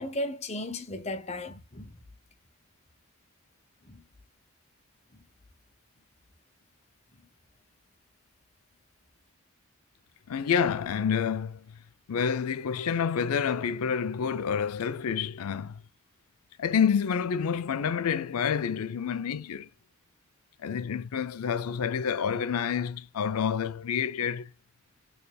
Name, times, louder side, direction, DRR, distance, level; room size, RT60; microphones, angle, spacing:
voice 1, 0.0-2.0 3.9-4.0, left 1 dB, 30° left, 0.7 m, -35 dB
voice 2, 10.3-11.8 12.1-15.8 16.6-19.7 20.6-24.5, left 7 dB, 85° left, 0.4 m, -28 dB
4.1 x 3.3 x 2.2 m
head